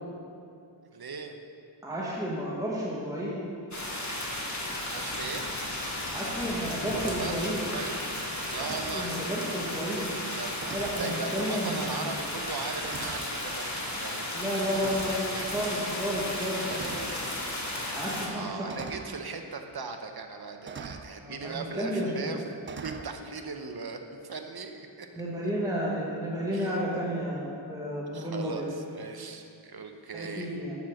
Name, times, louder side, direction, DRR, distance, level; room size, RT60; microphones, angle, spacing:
voice 1, 0.9-1.4 4.8-5.5 6.9-8.0 8.5-9.2 10.4-14.3 15.3-15.4 18.2-25.1 26.5-26.8 28.1-30.6, right 4 dB, 55° right, 5 dB, 0.8 m, -38 dB
voice 2, 1.8-3.4 6.1-7.6 8.6-10.1 10.7-12.0 14.3-17.0 17.9-18.7 21.2-22.4 25.1-28.7 30.1-30.8, equal, 5° right, -6 dB, 1.5 m, -32 dB
sound 1, 3.7-18.3, left 1 dB, 35° left, 1.5 m, -34 dB
sound 2, 6.4-6.6 8.6-9.1 10.6-11.1 12.0-12.1 12.8-13.3 14.7-15.2 16.7-17.2 18.7-19.1 20.7-21.1 22.6-23.1, right 5 dB, 30° right, 0.4 m, -41 dB
7.2 x 5.7 x 6.4 m, 2.6 s
wide cardioid pair, 60°, 46 cm